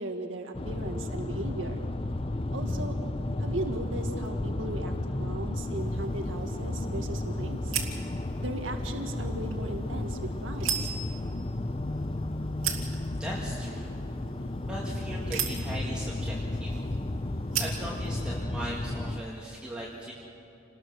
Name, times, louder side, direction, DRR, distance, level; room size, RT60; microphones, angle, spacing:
voice 1, 0.0-1.8 2.5-3.0 3.4-4.9 5.2-7.7 8.4-10.9, right 1 dB, 70° right, 4 dB, 1.8 m, -37 dB
sound 1, 0.5-19.2, left 1 dB, 30° left, 0.6 m, -33 dB
sound 2, 5.7-18.4, right 8 dB, 85° right, 2.7 m, -39 dB
voice 2, 13.2-14.0 14.6-16.8 17.3-20.1, right 1 dB, 5° right, -6 dB, 2.1 m, -39 dB
28.5 x 20.0 x 6.4 m, 2.7 s
head